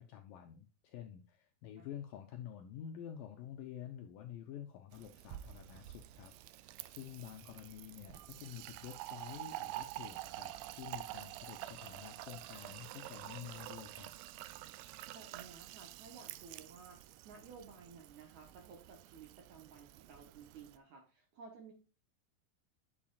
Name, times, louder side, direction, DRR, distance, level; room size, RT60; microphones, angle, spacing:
voice 1, 0.0-14.1, left 10 dB, 80° left, 4 dB, 2.0 m, -49 dB
Fill (with liquid), 4.9-20.8, right 15 dB, 85° right, 2.1 m, -48 dB
voice 2, 15.1-21.7, right 5 dB, 60° right, 2 dB, 2.2 m, -55 dB
8.6 x 6.6 x 2.4 m, 0.32 s
omnidirectional pair, 4.7 m